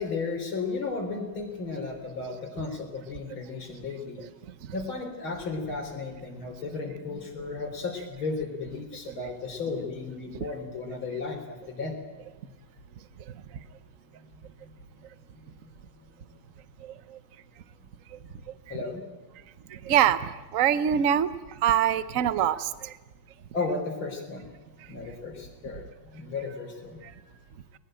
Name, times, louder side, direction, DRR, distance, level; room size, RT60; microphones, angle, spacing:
voice 1, 0.0-4.2 4.7-12.0 14.6-14.7 18.7-19.0 23.5-24.5 24.9-27.4, left 4 dB, 75° left, 4 dB, 4.5 m, -34 dB
voice 2, 16.8-17.2 18.1-18.2 18.7-18.8 19.7-22.9 27.0-27.1, right 9 dB, 50° right, 14 dB, 1.1 m, -25 dB
21.5 x 20.5 x 9.0 m, 1.2 s
omnidirectional pair, 2.3 m